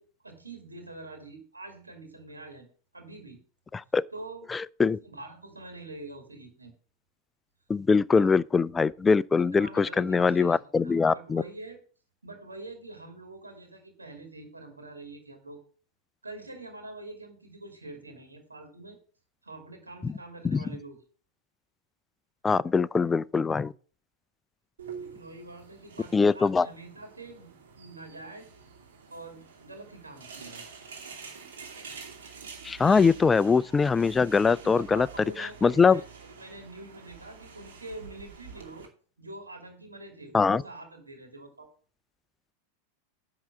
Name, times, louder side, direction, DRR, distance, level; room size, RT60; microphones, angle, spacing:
voice 1, 0.0-2.7 2.9-3.4 4.1-4.5 5.0-6.8 9.5-11.8 12.2-15.6 16.2-19.0 19.4-21.0 24.9-28.5 29.1-30.7 34.5-38.9 39.2-41.7, right 2 dB, 80° right, 2.5 m, -45 dB
voice 2, 4.5-5.0 7.7-11.4 20.0-20.1 20.4-20.6 22.4-23.7 26.1-26.7 32.6-35.1 35.4-36.0 40.3-40.6, left 5 dB, 15° left, 0.3 m, -23 dB
sound 1, 24.8-38.9, right 6 dB, 60° right, 2.6 m, -47 dB
10.5 x 3.8 x 7.4 m
figure-of-eight pair, 90°, 0 cm